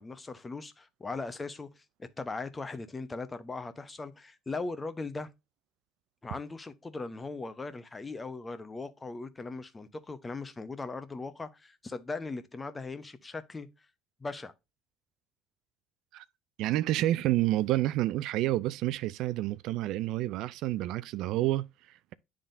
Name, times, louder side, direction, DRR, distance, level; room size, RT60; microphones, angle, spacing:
voice 1, 0.0-5.3 6.2-13.7 14.2-14.5, left 3 dB, 20° left, 0.9 m, -39 dB
voice 2, 16.6-22.1, right 15 dB, 70° right, 0.4 m, -29 dB
10.0 x 3.7 x 2.6 m
supercardioid pair, 85°, 0 cm